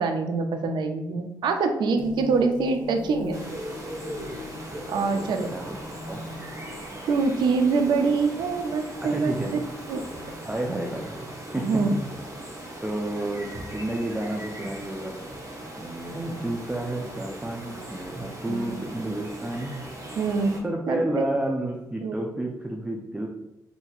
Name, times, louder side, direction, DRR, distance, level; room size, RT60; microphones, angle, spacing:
voice 1, 0.0-3.4 4.9-5.5 7.1-9.3 9.9-10.0 11.6-11.9 18.5-18.8 20.2-21.2 22.0-22.2, right 4 dB, 75° right, 6 dB, 0.4 m, -25 dB
sound 1, 2.0-8.1 8.7-10.5, left 3 dB, 85° left, 0.5 m, -43 dB
sound 2, 3.3-20.6, right 1 dB, 45° right, 0.9 m, -39 dB
voice 2, 9.0-9.5 10.4-11.3 11.5-12.0 12.8-15.2 15.8-19.7 20.6-23.3, right 1 dB, 15° right, 0 dB, 0.5 m, -30 dB
4.3 x 2.8 x 2.3 m, 0.93 s
cardioid pair, 70°, 8 cm